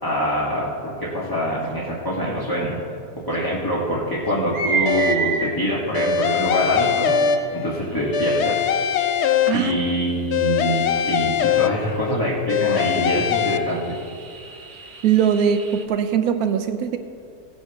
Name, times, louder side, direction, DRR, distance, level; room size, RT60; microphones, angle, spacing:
voice 1, 0.0-2.8 3.3-7.1 7.5-8.6 9.5-14.0, equal, 15° left, -7 dB, 1.5 m, -24 dB
sound 1, 2.4-2.5 3.3-3.4 4.3-5.5 6.6-6.7 7.9-12.2 12.7-12.8 13.1-15.8, right 5 dB, 50° right, 1.3 m, -32 dB
sound 2, 4.9-5.4 5.9-7.8 8.1-9.9 10.3-12.1 12.5-13.6, left 8 dB, 65° left, 0.7 m, -22 dB
voice 2, 15.0-17.0, right 8 dB, 75° right, 7 dB, 1.1 m, -20 dB
16.5 x 9.0 x 3.5 m, 2.4 s
omnidirectional pair, 1.6 m